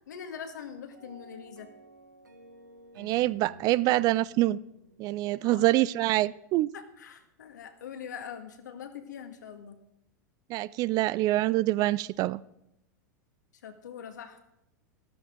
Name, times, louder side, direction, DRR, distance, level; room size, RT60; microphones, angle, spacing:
voice 1, 0.1-1.7 5.4-5.7 6.7-9.8 13.6-14.4, left 7 dB, 75° left, 7 dB, 1.7 m, -43 dB
sound 1, 0.9-6.1, right 1 dB, 85° right, 1.4 m, -53 dB
voice 2, 3.0-4.6 5.0-6.7 10.5-12.4, right 17 dB, 40° right, 21 dB, 0.4 m, -25 dB
14.0 x 13.5 x 3.8 m, 0.83 s
hypercardioid pair, 95°, 10 cm